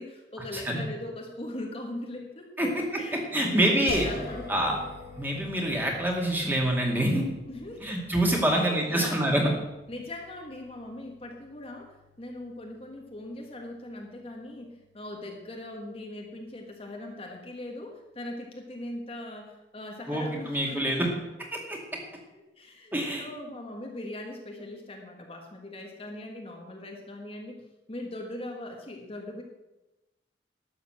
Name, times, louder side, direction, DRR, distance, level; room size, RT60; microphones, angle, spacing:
voice 1, 0.0-4.9 7.5-8.0 8.4-9.3 9.9-21.1 22.3-29.4, left 1 dB, 35° left, 1 dB, 1.4 m, -40 dB
voice 2, 3.3-4.1 4.5-4.7 5.2-7.2 7.8-9.5 20.1-21.1 21.7-21.8 22.9-23.2, right 1 dB, 10° right, -1 dB, 2.3 m, -26 dB
sound 1, 3.9-16.9, left 2 dB, 65° left, 3.2 m, -46 dB
12.5 x 6.9 x 7.7 m, 1.0 s
head